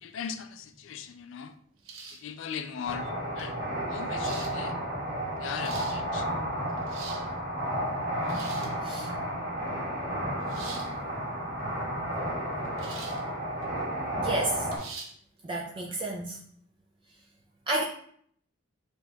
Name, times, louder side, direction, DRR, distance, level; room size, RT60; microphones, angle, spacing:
voice 1, 0.0-1.6 2.1-3.6 3.9-4.8 5.4-6.3, left 7 dB, 65° left, 9 dB, 0.3 m, -39 dB
sound 1, 1.8-2.3 3.4-3.5 4.2-4.5 5.4-6.0 6.7-7.3 8.2-8.8 10.5-10.9 12.8-13.2 13.6-13.7 14.7-15.1, right 4 dB, 75° right, 0.7 m, -43 dB
sound 2, 2.8-14.8, right 1 dB, 50° right, 1.7 m, -32 dB
voice 2, 14.2-14.7 15.4-16.4 17.7-17.8, right 2 dB, 25° right, -1 dB, 0.3 m, -31 dB
6.2 x 2.8 x 2.3 m, 0.64 s
head